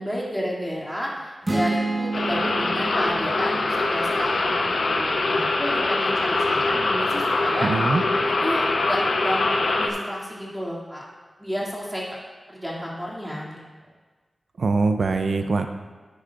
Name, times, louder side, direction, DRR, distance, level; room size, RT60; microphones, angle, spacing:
voice 1, 0.0-7.7 8.4-11.0 11.4-12.0 12.5-13.6, equal, 5° right, -5 dB, 2.6 m, -31 dB
sound 1, 1.4-5.2, right 2 dB, 30° right, 1.4 m, -30 dB
sound 2, 2.1-9.9, left 2 dB, 75° left, 0.9 m, -23 dB
voice 2, 7.6-8.0 14.6-15.7, right 3 dB, 70° right, 7 dB, 0.6 m, -22 dB
10.5 x 10.0 x 2.5 m, 1.4 s
wide cardioid pair, 85°, 0 cm